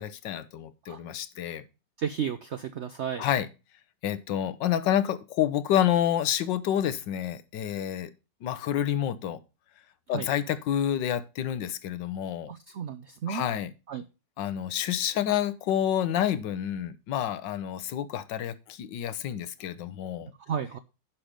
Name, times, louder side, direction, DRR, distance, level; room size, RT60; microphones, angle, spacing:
voice 1, 0.0-1.6 3.2-3.5 4.0-8.1 8.4-9.4 10.1-12.5 13.3-13.7 14.4-20.3, left 10 dB, 85° left, 1.5 m, -28 dB
voice 2, 2.0-3.3 10.1-10.3 12.5-13.4 13.9-14.0 20.5-20.8, right 8 dB, 75° right, 0.6 m, -33 dB
10.0 x 6.0 x 5.0 m
omnidirectional pair, 1.9 m